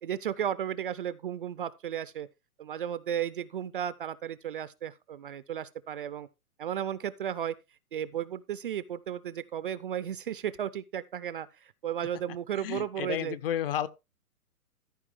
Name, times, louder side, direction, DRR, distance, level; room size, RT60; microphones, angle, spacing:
voice 1, 0.0-2.3 2.6-6.3 6.6-7.5 7.9-13.4, right 9 dB, 35° right, 0.5 m, -34 dB
voice 2, 12.6-13.9, left 10 dB, 40° left, 0.8 m, -32 dB
14.0 x 4.8 x 4.9 m
hypercardioid pair, 135°, 46 cm